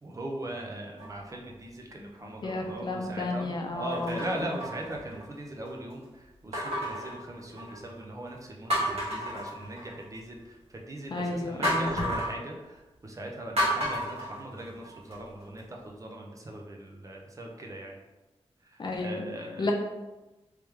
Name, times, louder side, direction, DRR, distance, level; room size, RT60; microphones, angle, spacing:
voice 1, 0.0-18.0 19.0-19.7, right 1 dB, 30° right, 0 dB, 0.5 m, -40 dB
sound 1, 1.0-1.5 2.1-2.3 3.9-5.4 6.5-7.9 8.3-8.4 8.7-10.2 11.6-12.4 13.6-15.1 15.6-15.7, equal, 70° right, 1.4 m, -32 dB
voice 2, 2.4-4.5 11.1-12.1 18.8-19.3 19.6-19.7, left 2 dB, 45° left, 1 dB, 0.5 m, -32 dB
3.1 x 3.1 x 3.4 m, 1.1 s
wide cardioid pair, 140°, 11 cm